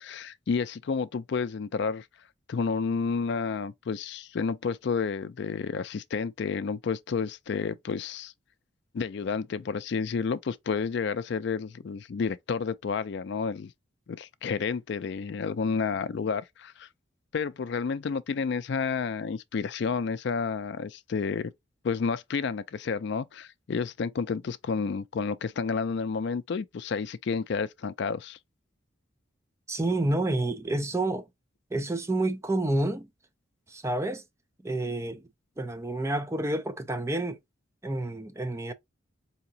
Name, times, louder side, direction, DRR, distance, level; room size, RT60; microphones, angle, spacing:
voice 1, 0.0-2.0 2.5-8.3 8.9-13.7 14.1-16.9 17.3-21.5 21.8-28.4, left 5 dB, 60° left, 0.4 m, -30 dB
voice 2, 29.7-31.2 31.7-33.1 33.7-34.2 34.6-35.2 35.6-37.4 37.8-38.7, right 2 dB, 15° right, 0.4 m, -29 dB
4.8 x 2.8 x 2.7 m
head